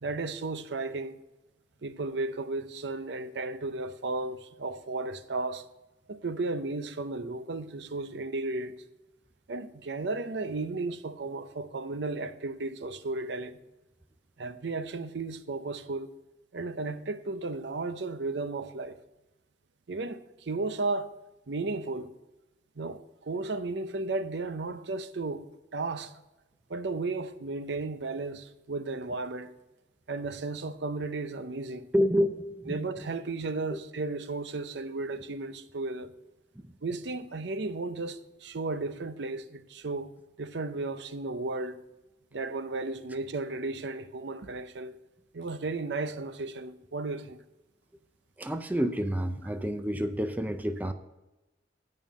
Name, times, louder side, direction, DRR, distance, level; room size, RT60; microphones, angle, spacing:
voice 1, 0.0-1.2 1.8-5.6 6.1-8.7 9.5-13.6 14.4-16.1 16.5-19.0 19.9-21.1 21.5-22.1 22.8-25.5 25.7-26.1 26.7-29.5 30.1-31.9 32.7-36.1 36.8-40.1 40.4-41.8 42.3-45.0 45.3-47.4, right 3 dB, 70° right, 0.6 m, -34 dB
voice 2, 31.9-32.8 33.7-33.8 36.6-36.7 48.4-50.9, equal, 10° right, 0.4 m, -29 dB
9.3 x 5.4 x 7.5 m
head